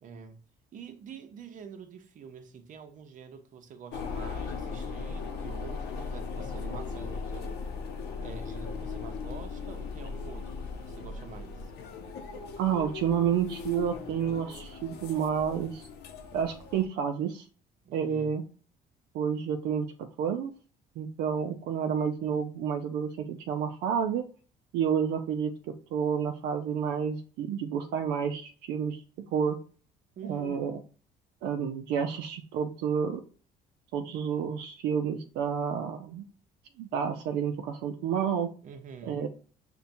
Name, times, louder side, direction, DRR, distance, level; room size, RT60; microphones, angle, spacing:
voice 1, 0.0-0.4 0.7-7.6 8.2-11.7 17.8-18.4 30.2-30.8 38.6-39.2, right 6 dB, 50° right, 0.7 m, -46 dB
sound 1, 3.9-16.9, left 5 dB, 75° left, 0.6 m, -38 dB
voice 2, 12.6-15.9 16.3-17.4 17.9-18.4 19.1-19.9 20.2-20.5 21.0-24.2 24.7-29.6 30.3-30.8 31.4-33.2 33.9-36.2 36.8-38.5 39.0-39.3, right 7 dB, 85° right, 0.5 m, -30 dB
5.5 x 2.2 x 2.5 m
cardioid pair, 110°, 17 cm